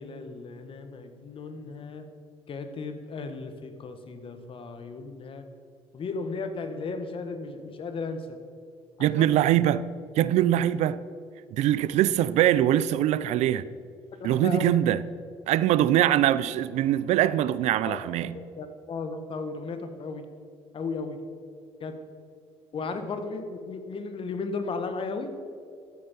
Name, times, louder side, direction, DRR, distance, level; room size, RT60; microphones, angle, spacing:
voice 1, 0.0-2.1 2.5-5.4 5.9-8.4 9.0-9.3 14.2-14.7 17.8-18.0 18.6-20.2 20.7-21.2 21.8-22.0 22.7-25.3, left 4 dB, 50° left, 1.6 m, -35 dB
voice 2, 9.0-9.8 10.2-11.0 11.5-13.6 14.2-15.0 15.5-18.4, right 12 dB, 75° right, 0.5 m, -23 dB
13.5 x 9.1 x 5.6 m
supercardioid pair, 80°, 12 cm